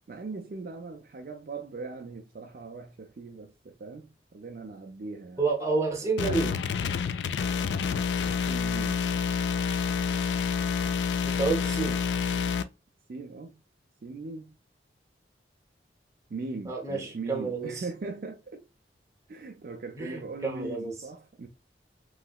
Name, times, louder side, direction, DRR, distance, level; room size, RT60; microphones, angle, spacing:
voice 1, 0.1-5.4 8.5-9.1 13.1-13.6 14.0-14.6 16.3-18.7 19.3-21.5, right 3 dB, 55° right, 0.4 m, -40 dB
voice 2, 5.4-6.6 11.2-12.0 16.7-17.8 20.0-20.9, right 4 dB, 15° right, 0.7 m, -29 dB
sound 1, 6.2-12.6, left 6 dB, 85° left, 0.3 m, -28 dB
3.2 x 2.8 x 2.3 m
head